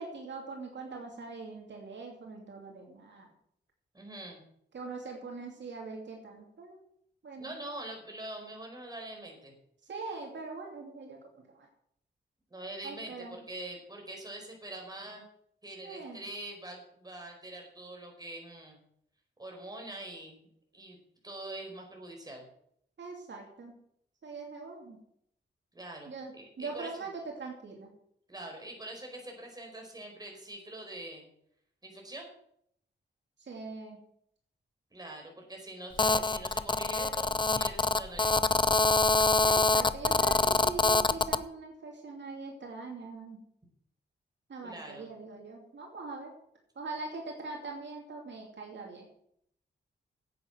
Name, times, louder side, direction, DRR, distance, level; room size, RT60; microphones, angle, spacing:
voice 1, 0.0-3.3 4.7-6.8 7.2-7.5 9.8-11.2 11.5-11.7 12.8-13.4 15.8-16.2 23.0-23.7 24.2-25.0 26.1-27.9 33.4-34.0 39.4-43.4 44.5-46.3 46.7-49.1, right 3 dB, 70° right, 0 dB, 2.7 m, -42 dB
voice 2, 3.9-4.4 7.4-9.5 12.5-15.2 15.6-18.8 19.4-20.5 20.7-21.0 21.2-22.5 25.7-27.0 28.3-31.2 31.8-32.3 34.9-38.5 44.6-45.1, right 1 dB, 20° right, 1 dB, 4.8 m, -44 dB
Telephone, 36.0-41.4, left 3 dB, 25° left, 0.6 m, -25 dB
10.5 x 8.6 x 7.9 m, 0.71 s
wide cardioid pair, 95°, 19 cm